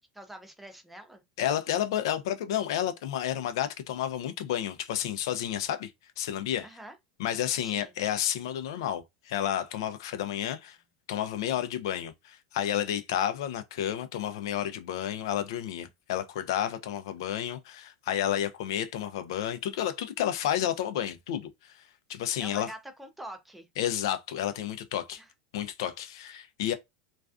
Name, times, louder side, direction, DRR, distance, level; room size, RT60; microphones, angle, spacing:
voice 1, 0.1-1.2 6.6-7.0 7.6-7.9 22.4-23.7 25.2-25.3, right 1 dB, 5° right, 0.4 m, -45 dB
voice 2, 1.4-5.9 6.2-6.7 7.2-10.8 11.1-21.8 22.1-22.7 23.8-25.2 25.5-26.7, left 11 dB, 70° left, 0.4 m, -31 dB
2.4 x 2.3 x 2.3 m
supercardioid pair, 145°, 3 cm